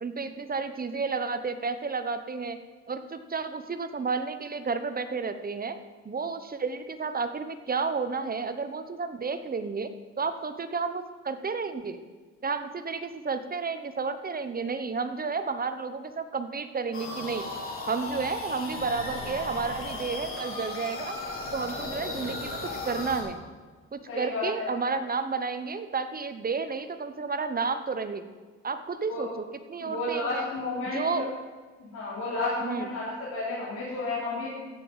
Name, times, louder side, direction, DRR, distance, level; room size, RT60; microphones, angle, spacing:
voice 1, 0.0-2.6 2.9-5.8 6.0-9.9 10.2-12.0 12.4-17.5 17.9-21.2 21.5-22.6 22.8-23.4 23.9-28.2 28.6-30.5 30.9-31.3 32.6-32.9, right 4 dB, 30° right, 9 dB, 1.0 m, -31 dB
sound 1, 16.9-23.2, left 2 dB, 45° left, 3.7 m, -35 dB
voice 2, 24.1-24.7 29.1-29.2 29.8-31.3 31.8-34.5, left 2 dB, 80° left, -9 dB, 4.3 m, -32 dB
15.5 x 6.9 x 5.6 m, 1.4 s
cardioid pair, 90°, 30 cm